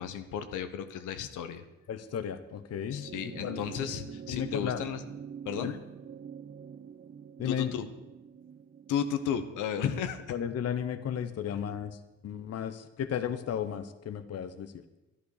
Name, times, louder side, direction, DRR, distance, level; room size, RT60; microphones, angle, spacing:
voice 1, 0.0-1.6 2.9-5.0 5.4-5.7 7.4-7.9 8.9-10.2 11.5-11.6, left 8 dB, 85° left, 9 dB, 1.1 m, -34 dB
voice 2, 1.9-3.6 4.3-4.8 5.6-5.8 7.4-7.7 10.3-14.8, left 9 dB, 55° left, 10 dB, 1.0 m, -34 dB
sound 1, 2.8-11.4 12.6-12.7, right 7 dB, 35° right, 0.8 m, -46 dB
11.5 x 11.0 x 6.6 m, 1.0 s
cardioid pair, 90°, 30 cm